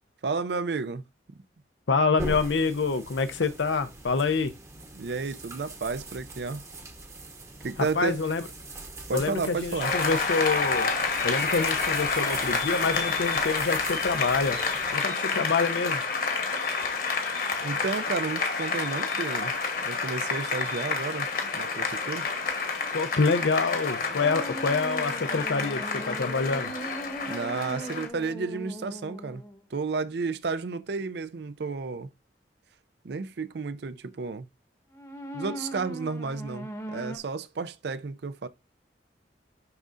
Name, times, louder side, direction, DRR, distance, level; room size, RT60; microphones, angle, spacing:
voice 1, 0.2-1.0 4.9-6.6 7.6-8.2 9.1-9.9 17.6-19.5 19.8-21.3 21.5-22.3 27.3-29.4 29.7-32.1 33.0-34.5 35.3-38.5, right 4 dB, 65° right, 0.5 m, -32 dB
voice 2, 1.9-4.5 8.0-8.5 9.1-10.9 11.2-14.6 14.9-16.0 22.9-26.7, left 4 dB, 80° left, 0.6 m, -26 dB
sound 1, 2.2-15.0, right 2 dB, 15° right, 0.8 m, -41 dB
Applause, 9.8-28.1, left 4 dB, 50° left, 1.2 m, -29 dB
sound 2, 24.2-29.6 34.9-37.2, right 1 dB, 15° left, 0.8 m, -39 dB
10.5 x 3.7 x 2.6 m
head